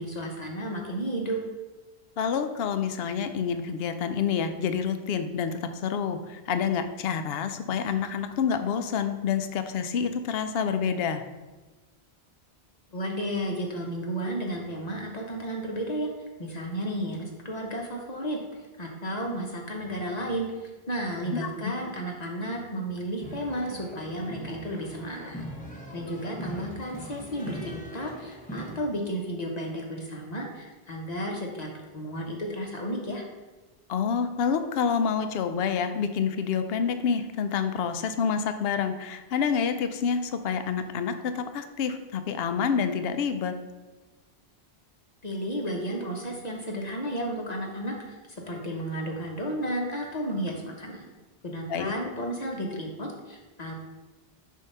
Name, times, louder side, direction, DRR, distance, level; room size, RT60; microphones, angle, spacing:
voice 1, 0.0-1.4 12.9-16.1 16.4-18.4 18.8-25.4 25.9-33.2 45.2-48.1 48.5-51.1 51.4-53.8, right 1 dB, 40° left, 0 dB, 0.9 m, -33 dB
voice 2, 2.2-11.2 21.3-21.5 33.9-43.5 51.7-51.9, left 6 dB, 70° left, 9 dB, 0.8 m, -28 dB
sound 1, 23.2-28.8, equal, 10° left, 0.8 m, -40 dB
7.0 x 2.8 x 5.5 m, 1.2 s
omnidirectional pair, 1.1 m